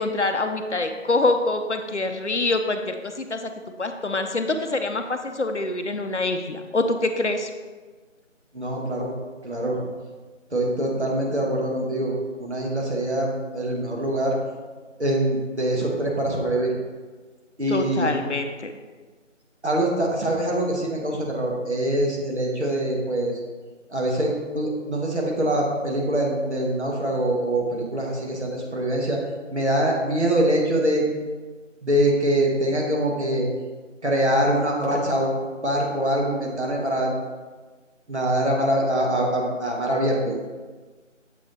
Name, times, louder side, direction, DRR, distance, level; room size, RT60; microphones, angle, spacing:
voice 1, 0.0-3.5 3.8-7.5 17.7-18.7, left 2 dB, 65° left, 6 dB, 0.6 m, -25 dB
voice 2, 8.5-9.1 9.4-9.8 10.5-12.1 12.4-14.4 15.0-16.7 17.6-18.2 19.6-23.4 23.9-29.2 29.5-31.1 31.8-33.5 34.0-35.3 35.6-37.1 38.1-40.4, right 1 dB, 60° right, -2 dB, 1.6 m, -24 dB
7.4 x 3.3 x 4.0 m, 1.4 s
figure-of-eight pair, 175°, 38 cm